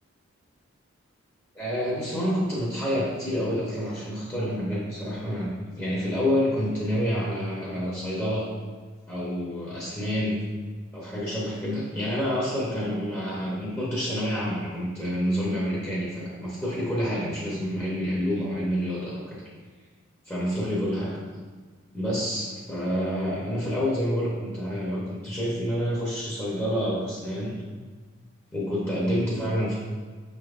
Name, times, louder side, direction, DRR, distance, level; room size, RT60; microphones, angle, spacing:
voice 1, 1.6-8.5 9.1-10.5 10.9-19.4 20.2-21.2 21.9-27.6 28.5-29.7, equal, 10° left, -7 dB, 0.7 m, -28 dB
5.5 x 3.3 x 2.4 m, 1.4 s
head